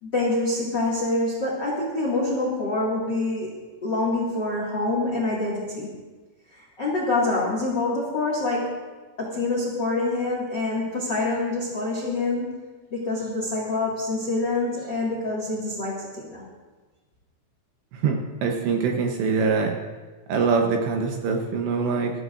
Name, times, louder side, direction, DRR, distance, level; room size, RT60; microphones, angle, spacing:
voice 1, 0.0-3.5 3.8-5.9 6.5-8.7 9.2-12.5 12.9-16.4, left 2 dB, 55° left, -3 dB, 1.2 m, -26 dB
voice 2, 18.0-19.8 20.3-22.1, right 5 dB, 75° right, 2 dB, 2.8 m, -23 dB
19.5 x 14.0 x 2.6 m, 1.3 s
omnidirectional pair, 5.7 m